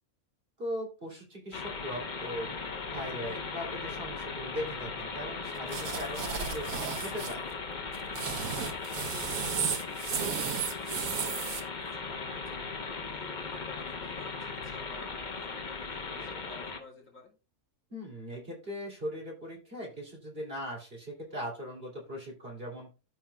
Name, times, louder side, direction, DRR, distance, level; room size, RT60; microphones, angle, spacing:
voice 1, 0.6-2.5 2.9-7.4 17.9-22.9, equal, 40° right, -1 dB, 3.1 m, -39 dB
sound 1, 1.5-16.8, left 4 dB, 35° left, 1.0 m, -38 dB
sound 2, 5.7-7.3 7.9-11.6, right 6 dB, 75° right, 1.4 m, -34 dB
voice 2, 8.1-8.6 9.1-12.6 13.0-17.3, left 3 dB, 60° left, -2 dB, 3.0 m, -51 dB
13.5 x 5.6 x 2.3 m, 0.33 s
omnidirectional pair, 1.5 m